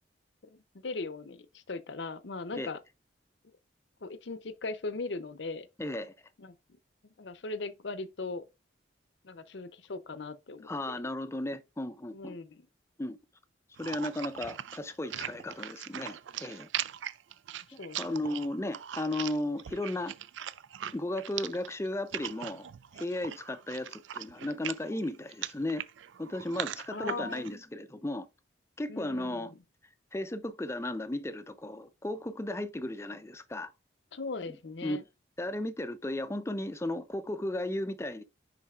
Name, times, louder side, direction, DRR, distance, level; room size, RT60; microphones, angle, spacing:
voice 1, 0.5-2.8 4.0-5.7 6.4-6.5 7.2-8.4 9.2-11.0 12.1-12.7 17.8-18.3 26.9-27.5 28.9-29.5 34.1-35.0, left 3 dB, 75° left, 0.7 m, -39 dB
voice 2, 5.8-6.1 10.6-12.4 13.0-13.2 13.8-16.7 17.7-20.1 20.9-22.7 22.9-25.8 26.2-28.3 28.8-29.5 30.1-33.7 34.8-35.0 35.4-38.2, left 1 dB, 15° left, 0.5 m, -35 dB
sound 1, 13.8-27.5, right 11 dB, 85° right, 0.4 m, -40 dB
10.0 x 4.0 x 2.4 m
head